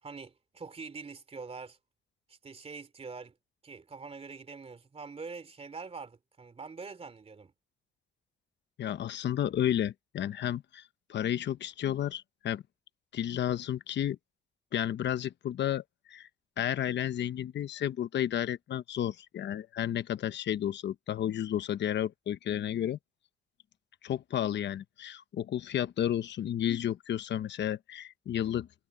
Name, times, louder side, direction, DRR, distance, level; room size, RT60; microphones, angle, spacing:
voice 1, 0.0-1.8 2.3-3.3 3.6-7.5, right 4 dB, 30° right, 2.9 m, -44 dB
voice 2, 8.8-10.8 11.1-12.6 13.1-14.2 14.7-16.3 16.6-23.0 24.0-28.7, left 10 dB, 65° left, 1.0 m, -32 dB
cardioid pair, 90°, 20 cm